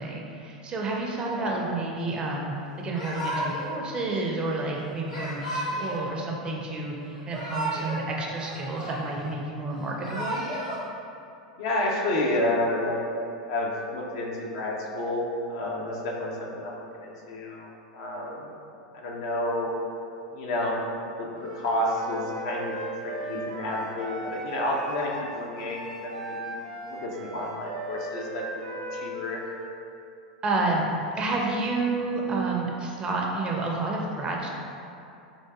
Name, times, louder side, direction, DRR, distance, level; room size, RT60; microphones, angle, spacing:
voice 1, 0.0-10.4 30.4-30.9 31.1-34.5, right 2 dB, 25° right, -1 dB, 0.4 m, -30 dB
Yell / Crying sobbing, 2.9-3.7 5.1-6.1 7.1-8.0 8.3-9.3 9.8-10.8, right 1 dB, 75° left, 1.0 m, -32 dB
voice 2, 11.6-13.0 13.5-15.2 15.5-17.7 17.9-18.5 18.9-19.7 20.3-22.8 23.0-26.6 26.9-29.4, left 1 dB, 50° left, -2 dB, 0.5 m, -30 dB
Wind instrument woodwind instrument, 21.4-29.7, right 1 dB, 75° right, 0.6 m, -37 dB
4.6 x 2.5 x 2.3 m, 2.7 s
figure-of-eight pair, 85°, 4 cm